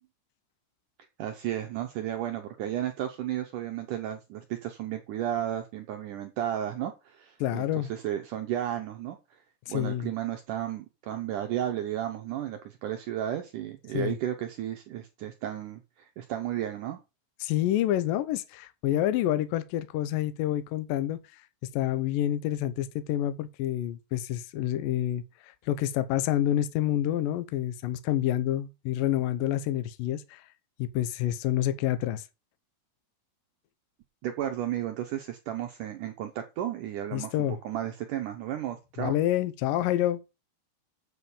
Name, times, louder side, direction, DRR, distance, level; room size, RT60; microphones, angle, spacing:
voice 1, 1.2-9.4 9.7-17.0 34.2-39.1, right 11 dB, 80° right, 1.8 m, -33 dB
voice 2, 7.4-7.9 9.7-10.1 13.9-14.2 17.4-21.2 21.7-30.4 30.8-32.2 37.1-37.6 39.0-40.2, left 12 dB, 75° left, 2.2 m, -28 dB
7.6 x 6.3 x 7.0 m
omnidirectional pair, 4.8 m